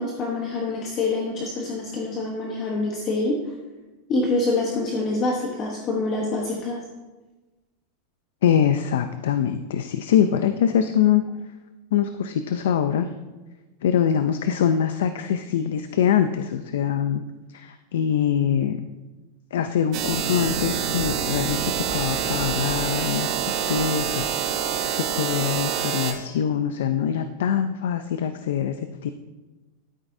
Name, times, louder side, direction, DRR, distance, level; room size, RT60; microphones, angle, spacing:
voice 1, 0.0-3.4 4.1-6.8, left 2 dB, 25° left, -1 dB, 1.1 m, -26 dB
voice 2, 8.4-11.2 11.9-13.1 13.8-17.2 17.5-18.8 19.5-24.3 24.6-24.7 24.9-29.1, left 9 dB, 85° left, 9 dB, 0.5 m, -23 dB
sound 1, 19.9-26.1, right 8 dB, 45° right, 1.1 m, -26 dB
12.0 x 9.1 x 2.7 m, 1.2 s
supercardioid pair, 165°, 0 cm